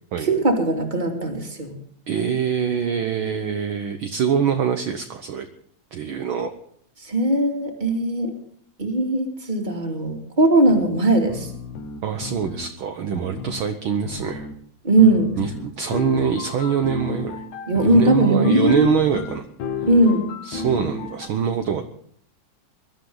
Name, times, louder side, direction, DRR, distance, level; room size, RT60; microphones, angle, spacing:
voice 1, 0.2-1.7 7.0-8.3 8.8-11.5 14.8-15.3 17.7-19.0 19.9-20.2, right 1 dB, 15° right, 2 dB, 2.5 m, -19 dB
voice 2, 2.1-5.5 5.9-6.5 12.0-14.5 15.4-17.4 17.8-19.4 20.4-21.9, right 7 dB, 65° right, 6 dB, 1.4 m, -24 dB
sound 1, 10.7-10.8 11.3-12.7 13.1-13.6 14.1-14.5 15.0-21.3, left 4 dB, 75° left, 2.9 m, -33 dB
22.5 x 12.5 x 3.9 m, 0.63 s
omnidirectional pair, 3.5 m